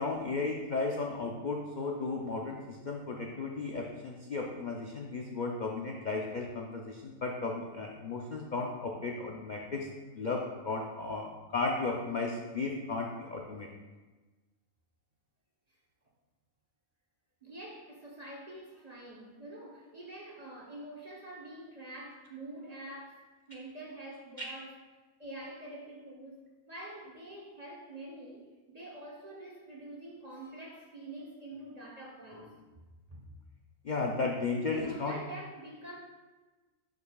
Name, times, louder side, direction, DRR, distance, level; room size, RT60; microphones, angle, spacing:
voice 1, 0.0-9.9 10.1-13.7 24.4-24.5 33.8-35.1, left 3 dB, 50° left, -1 dB, 0.6 m, -34 dB
voice 2, 17.4-24.8 25.2-26.4 26.6-32.6 33.1-33.3 34.6-36.0, right 1 dB, 30° right, -3 dB, 1.0 m, -46 dB
10.5 x 5.5 x 2.3 m, 1.2 s
omnidirectional pair, 1.4 m